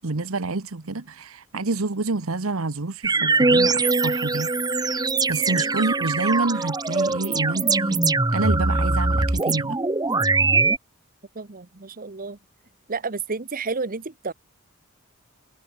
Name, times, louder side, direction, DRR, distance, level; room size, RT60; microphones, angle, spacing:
voice 1, 0.0-4.5 4.8-8.0 8.3-9.8, right 3 dB, 85° right, 1.2 m, -28 dB
sound 1, 3.0-10.8, right 3 dB, 20° right, 1.0 m, -22 dB
voice 2, 11.3-12.4 12.9-14.3, right 4 dB, 45° right, 1.1 m, -31 dB
head